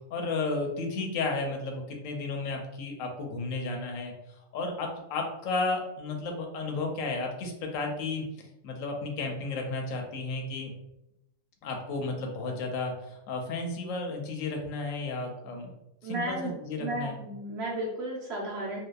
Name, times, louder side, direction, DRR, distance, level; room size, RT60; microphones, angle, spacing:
voice 1, 0.1-4.1 4.5-8.2 8.6-10.7 11.6-15.7 16.0-17.2, left 3 dB, 70° left, 2 dB, 0.9 m, -33 dB
voice 2, 16.0-16.5 16.8-18.8, right 1 dB, 55° right, -4 dB, 0.8 m, -33 dB
2.7 x 2.2 x 2.2 m, 0.87 s
omnidirectional pair, 1.5 m